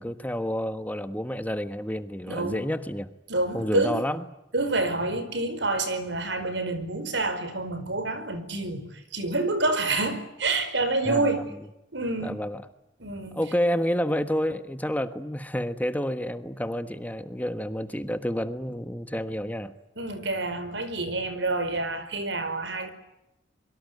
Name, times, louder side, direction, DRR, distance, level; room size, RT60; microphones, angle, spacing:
voice 1, 0.0-3.1 3.5-4.2 11.1-11.4 12.2-12.6 13.3-19.8, equal, 10° left, 10 dB, 1.3 m, -29 dB
voice 2, 2.3-2.6 3.3-4.0 4.5-11.5 11.9-12.4 13.0-13.4 20.0-22.9, right 2 dB, 75° right, 11 dB, 5.1 m, -28 dB
25.5 x 23.5 x 9.5 m, 0.87 s
head